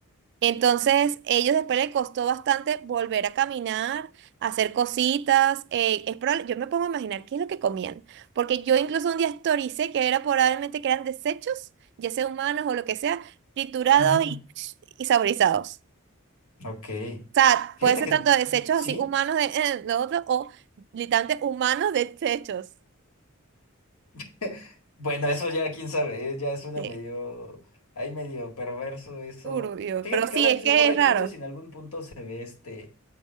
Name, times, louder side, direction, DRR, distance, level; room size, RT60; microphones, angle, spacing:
voice 1, 0.4-4.1 4.4-11.6 12.0-13.3 13.6-14.7 15.0-15.8 17.4-20.6 20.9-22.7 26.8-26.9 29.4-31.3, right 9 dB, 55° right, 0.3 m, -24 dB
voice 2, 14.0-14.4 16.6-17.2 17.8-18.2 18.5-19.1 24.1-27.6 28.0-29.7 30.0-32.9, left 2 dB, 85° left, 1.9 m, -33 dB
7.8 x 3.6 x 6.2 m
head